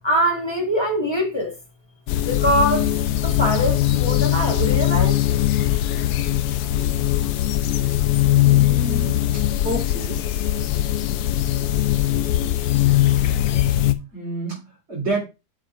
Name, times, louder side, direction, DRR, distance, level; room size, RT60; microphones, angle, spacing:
voice 1, 0.0-1.5 2.2-2.9 3.2-5.2, equal, 15° left, 1.6 m, -23 dB
sound 1, 2.1-13.9, left 13 dB, 80° left, 1.1 m, -20 dB
voice 2, 8.4-10.2 14.1-15.2, right 2 dB, 40° right, 3.5 m, -29 dB
7.5 x 4.8 x 3.7 m
omnidirectional pair, 1.7 m